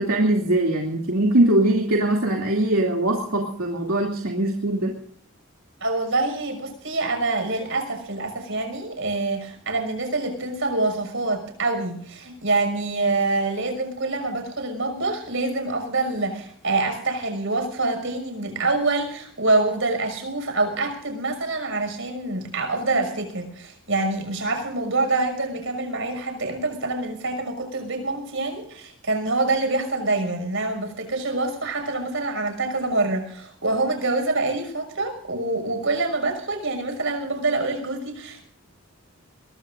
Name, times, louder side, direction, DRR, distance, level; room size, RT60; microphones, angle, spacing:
voice 1, 0.0-4.9, right 1 dB, 75° right, 0 dB, 2.8 m, -21 dB
voice 2, 5.8-38.5, right 2 dB, 60° right, 5 dB, 6.1 m, -26 dB
23.0 x 21.5 x 2.6 m, 0.63 s
head